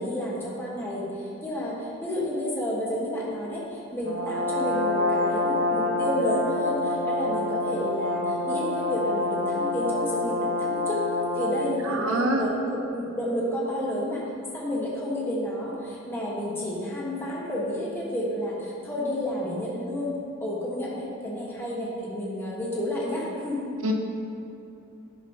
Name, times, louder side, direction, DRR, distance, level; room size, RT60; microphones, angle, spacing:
voice 1, 0.0-11.0 11.3-14.2 14.5-20.1 20.4-23.7, equal, 10° left, -7 dB, 1.3 m, -30 dB
Brass instrument, 4.0-11.8, left 2 dB, 70° right, 1.3 m, -27 dB
voice 2, 11.8-12.4 23.8-23.9, right 1 dB, 85° right, 2 dB, 1.0 m, -25 dB
10.5 x 3.6 x 5.8 m, 2.7 s
head